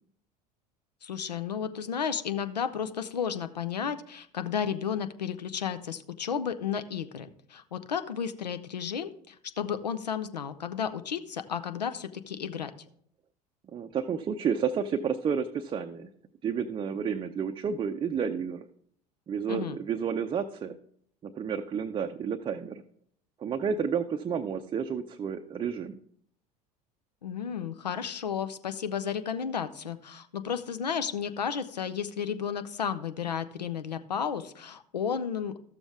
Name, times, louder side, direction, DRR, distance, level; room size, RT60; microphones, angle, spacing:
voice 1, 1.0-12.7 19.5-19.8 27.2-35.6, left 7 dB, 85° left, 11 dB, 0.5 m, -33 dB
voice 2, 13.7-16.1 16.4-18.7 19.3-20.8 21.2-22.8 23.4-26.0, right 7 dB, 25° right, 5 dB, 0.5 m, -31 dB
13.0 x 7.0 x 3.5 m, 0.65 s
figure-of-eight pair, 70°, 21 cm